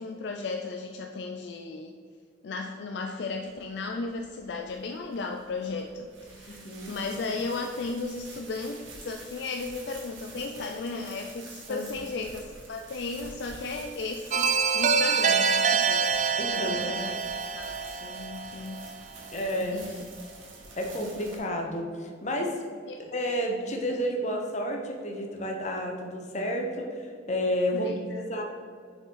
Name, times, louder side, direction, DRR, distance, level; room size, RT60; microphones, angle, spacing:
voice 1, 0.0-1.9 2.4-16.2 16.5-17.1 17.6-18.9 19.7-19.9 22.9-23.0 27.7-28.3, left 3 dB, 60° left, 3 dB, 0.4 m, -35 dB
sound 1, 3.5-21.4, right 3 dB, 90° right, 1.7 m, -48 dB
voice 2, 6.5-7.0 11.7-11.9 16.4-17.0 19.3-19.8 20.8-22.6 23.0-27.9 28.2-28.4, equal, 35° left, 2 dB, 0.9 m, -31 dB
sound 2, 14.3-19.1, right 5 dB, 40° right, 0.4 m, -26 dB
6.4 x 5.1 x 3.8 m, 2.1 s
head